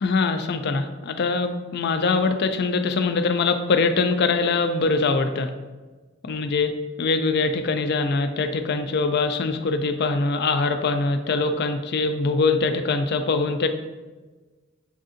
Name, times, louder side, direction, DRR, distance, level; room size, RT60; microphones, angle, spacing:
voice 1, 0.0-5.5 6.2-6.7 7.0-13.7, left 4 dB, 55° left, 7 dB, 0.4 m, -23 dB
7.4 x 2.6 x 2.5 m, 1.3 s
head